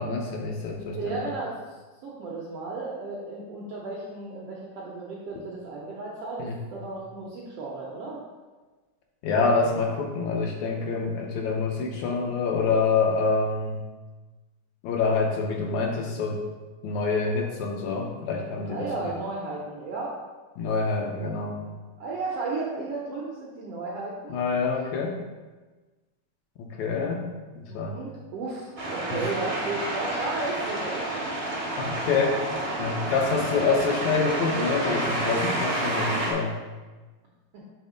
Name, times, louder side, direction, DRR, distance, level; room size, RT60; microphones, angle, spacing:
voice 1, 0.0-1.2 6.4-6.6 9.2-13.8 14.8-16.4 16.8-18.9 20.6-21.6 24.3-25.2 26.8-27.2 27.6-28.0 31.8-32.4 32.8-36.6, left 4 dB, 75° left, 1 dB, 1.8 m, -26 dB
voice 2, 0.9-1.8 2.0-8.2 18.7-20.1 20.9-21.6 22.0-24.4 27.7-31.3 37.5-37.6, right 3 dB, 75° right, -4 dB, 1.4 m, -34 dB
sound 1, 28.8-36.3, right 1 dB, 50° right, 0.7 m, -29 dB
6.4 x 3.5 x 5.0 m, 1.3 s
omnidirectional pair, 3.6 m